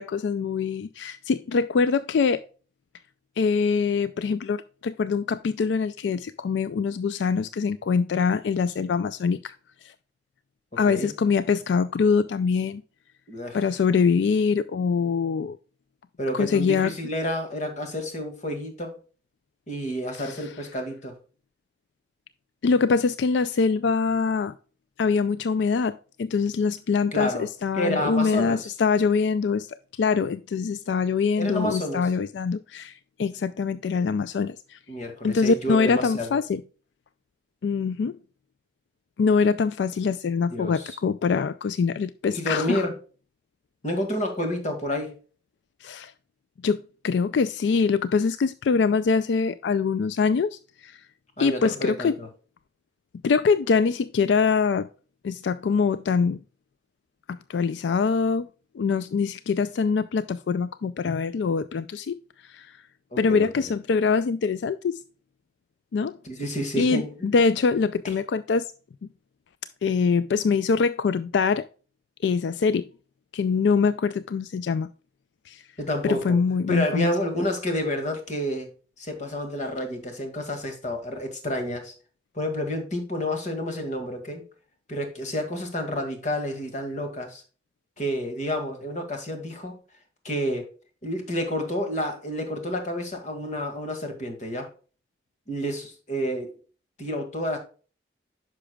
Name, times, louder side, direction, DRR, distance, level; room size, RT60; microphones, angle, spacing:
voice 1, 0.0-2.4 3.4-9.6 9.8-9.9 10.8-12.8 13.5-15.6 16.3-16.9 20.2-20.4 22.6-24.5 25.0-32.9 33.2-34.8 35.2-36.6 37.6-38.2 39.2-42.9 45.8-46.1 46.6-51.0 51.4-52.2 53.2-54.9 55.2-56.4 57.3-58.5 58.7-62.8 63.2-65.0 65.9-66.2 66.8-68.7 69.0-69.1 69.8-71.7 72.2-72.9 73.3-74.9 75.5-75.6 76.0-77.1, left 5 dB, 80° left, 0.3 m, -24 dB
voice 2, 13.3-13.7 16.2-19.0 19.7-21.2 27.1-27.5 27.7-28.6 31.4-32.1 34.9-36.4 40.5-41.0 42.3-42.9 43.8-45.2 51.4-52.3 63.1-63.7 66.2-67.4 75.8-76.4 76.7-78.7 79.0-81.9 82.3-84.4 84.9-87.4 88.0-89.8 90.2-90.7 91.0-94.7 95.5-96.6 97.0-97.6, equal, 45° left, 1.9 m, -29 dB
9.9 x 6.0 x 2.3 m
head